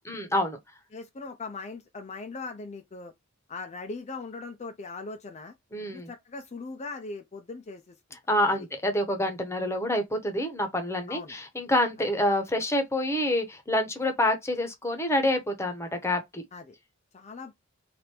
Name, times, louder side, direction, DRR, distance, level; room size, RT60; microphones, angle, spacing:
voice 1, 0.0-0.6 5.7-6.1 8.3-16.4, left 1 dB, 10° left, 0.9 m, -27 dB
voice 2, 0.9-3.1 3.5-5.5 5.9-7.9 8.5-8.6 11.1-11.3 16.5-16.7 17.1-17.5, left 3 dB, 30° left, 0.4 m, -39 dB
3.4 x 2.5 x 4.3 m
head